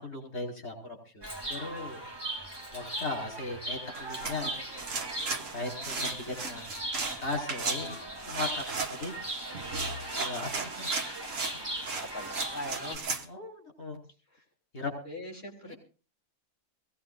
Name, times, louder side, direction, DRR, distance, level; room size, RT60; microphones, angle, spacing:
voice 1, 0.0-1.2 1.5-2.0 2.7-4.5 5.5-6.7 7.2-8.0 8.3-9.2 10.2-10.9 11.5-11.6 13.3-14.0 14.7-14.9 15.7-15.8, left 2 dB, 65° left, 1 dB, 5.7 m, -37 dB
Chirp tweet, 1.2-13.0, right 1 dB, 15° right, 2.0 m, -38 dB
sound 1, 3.9-13.3, right 4 dB, 70° right, 1.6 m, -37 dB
voice 2, 12.1-13.2 15.1-15.7, left 1 dB, 50° left, 0 dB, 4.3 m, -41 dB
23.0 x 17.5 x 2.6 m, 0.35 s
omnidirectional pair, 1.4 m